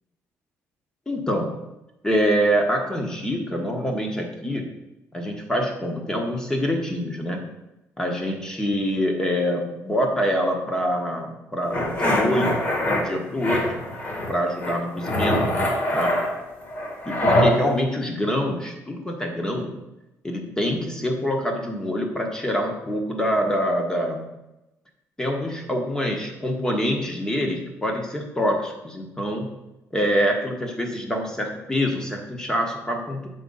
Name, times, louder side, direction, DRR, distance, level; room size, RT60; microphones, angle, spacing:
voice 1, 1.1-1.6 2.0-4.7 5.1-7.4 8.0-12.6 12.9-13.7 14.3-15.5 15.9-16.2 17.0-19.7 20.2-24.2 25.2-29.5 29.9-33.3, equal, 10° left, 2 dB, 1.3 m, -25 dB
sound 1, 11.7-13.0 13.4-14.3 14.6-17.5, left 1 dB, 35° left, 1.8 m, -23 dB
7.3 x 3.9 x 5.5 m, 0.95 s
cardioid pair, 125°, 5 cm